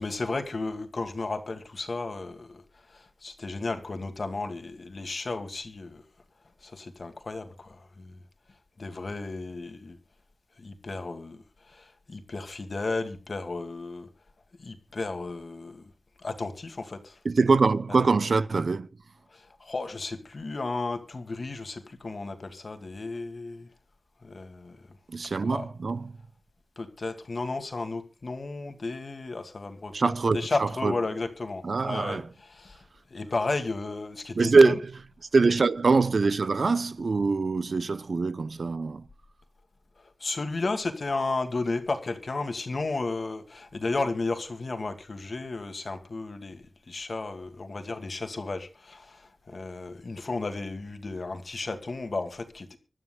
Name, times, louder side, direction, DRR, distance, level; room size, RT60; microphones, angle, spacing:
voice 1, 0.0-2.6 2.9-6.0 6.6-8.2 8.8-10.0 10.6-11.4 11.7-14.1 14.6-15.8 16.2-17.2 17.9-18.0 19.3-23.7 24.2-24.8 25.4-25.7 26.8-32.8 33.1-34.8 40.2-52.8, left 3 dB, 55° left, 2.3 m, -33 dB
voice 2, 17.2-18.9 25.1-26.2 29.9-30.9 31.6-32.3 34.3-34.9 35.3-39.1, right 4 dB, 65° right, 0.7 m, -23 dB
25.5 x 12.5 x 2.3 m
wide cardioid pair, 80°, 0 cm